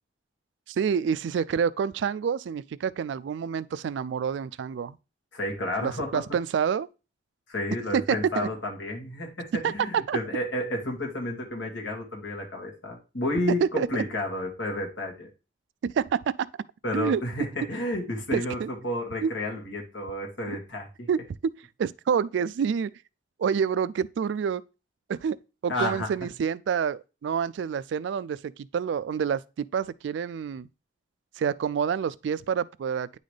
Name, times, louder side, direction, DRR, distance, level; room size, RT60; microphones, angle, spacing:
voice 1, 0.7-5.0 5.8-6.9 7.9-8.5 9.6-10.2 13.6-14.0 15.8-16.2 16.9-17.2 18.3-18.7 19.2-19.3 20.5-20.6 21.1-22.9 23.4-24.6 25.1-25.4 25.6-30.7 31.4-33.2, right 7 dB, 70° right, 0.3 m, -28 dB
voice 2, 5.3-6.2 7.5-15.3 16.8-21.1 25.7-26.1, left 1 dB, 75° left, 2.1 m, -31 dB
9.3 x 4.1 x 3.3 m
head